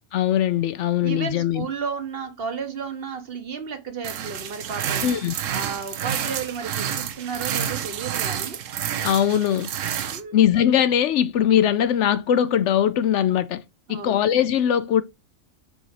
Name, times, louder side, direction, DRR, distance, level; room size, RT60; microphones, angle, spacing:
voice 1, 0.1-1.7 5.0-5.3 9.0-9.7 10.3-13.6 13.9-15.0, left 10 dB, 70° left, 0.8 m, -21 dB
voice 2, 1.0-5.1 5.5-8.6 10.1-10.4 13.9-14.2, right 6 dB, 50° right, 1.1 m, -33 dB
sound 1, 4.0-10.2, right 9 dB, 85° right, 1.1 m, -29 dB
5.0 x 4.1 x 4.7 m
omnidirectional pair, 1.3 m